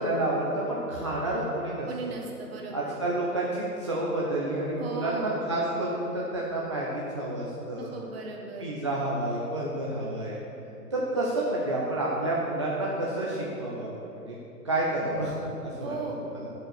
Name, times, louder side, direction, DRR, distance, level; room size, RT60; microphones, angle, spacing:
voice 1, 0.0-1.9 2.7-7.9 8.6-10.4 10.9-14.3 14.6-15.4 15.8-15.9 16.3-16.5, right 1 dB, 20° right, -5 dB, 0.5 m, -29 dB
voice 2, 1.9-3.0 4.8-5.4 7.8-8.7 15.8-16.2, right 3 dB, 40° right, 0 dB, 1.6 m, -37 dB
10.0 x 5.4 x 6.6 m, 2.8 s
figure-of-eight pair, 135°, 47 cm